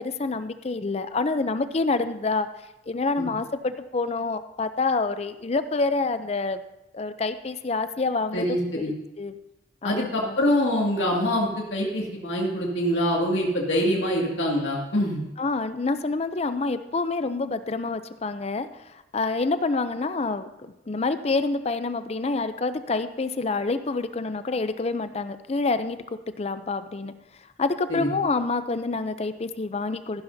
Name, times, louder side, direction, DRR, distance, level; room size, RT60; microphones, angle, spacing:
voice 1, 0.0-2.5 2.9-6.6 6.9-8.4 8.7-8.8 9.2-9.3 9.8-10.4 15.4-26.0 26.4-27.1 27.6-30.2, left 3 dB, 35° left, 11 dB, 0.5 m, -27 dB
voice 2, 8.3-8.9 9.8-15.2 27.9-28.1, equal, 80° left, -2 dB, 2.1 m, -25 dB
14.5 x 11.5 x 2.7 m, 0.94 s
head